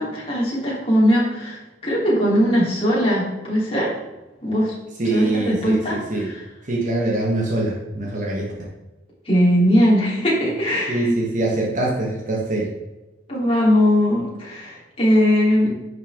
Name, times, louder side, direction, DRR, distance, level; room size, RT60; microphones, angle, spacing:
voice 1, 0.0-4.0 4.4-4.7 5.1-6.4 9.2-11.1 13.3-15.7, equal, 30° left, -6 dB, 3.3 m, -20 dB
voice 2, 5.0-6.3 6.6-8.5 10.9-12.7, right 2 dB, 40° right, 0 dB, 1.3 m, -23 dB
10.5 x 6.5 x 3.6 m, 1.1 s
head